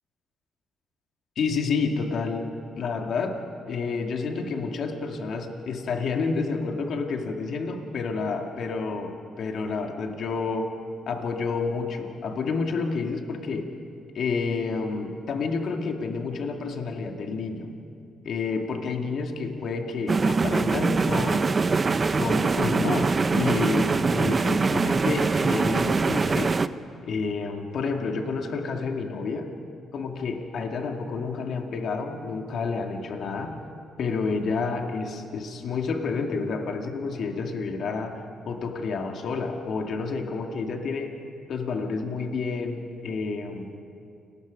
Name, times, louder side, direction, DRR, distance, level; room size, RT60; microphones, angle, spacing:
voice 1, 1.4-10.7 11.1-13.7 14.1-17.7 18.2-21.6 22.1-26.5 27.1-29.5 29.9-33.6 34.0-41.2 41.5-43.8, left 4 dB, 65° left, 3 dB, 2.1 m, -29 dB
sound 1, 20.1-26.7, right 4 dB, 35° right, 0.7 m, -23 dB
29.5 x 20.5 x 5.3 m, 2.5 s
cardioid pair, 90°, 0 cm